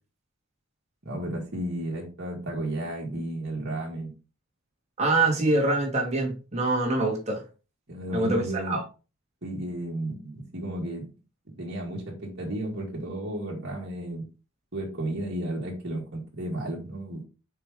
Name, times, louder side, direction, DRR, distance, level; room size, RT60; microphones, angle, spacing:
voice 1, 1.0-4.1 7.9-8.8 9.4-11.0 11.5-14.2 14.7-17.2, right 1 dB, 50° right, -3 dB, 2.0 m, -33 dB
voice 2, 5.0-7.4 8.1-8.8, right 2 dB, 30° right, -1 dB, 2.0 m, -25 dB
5.8 x 4.8 x 3.6 m, 0.33 s
head